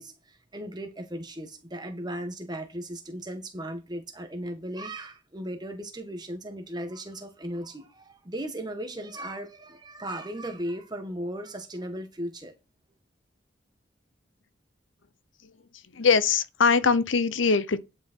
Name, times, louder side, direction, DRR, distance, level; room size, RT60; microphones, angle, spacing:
voice 1, 0.0-12.5, right 1 dB, 20° right, 1.7 m, -36 dB
voice 2, 15.9-17.8, left 5 dB, 90° left, 0.9 m, -22 dB
11.0 x 6.3 x 4.5 m
head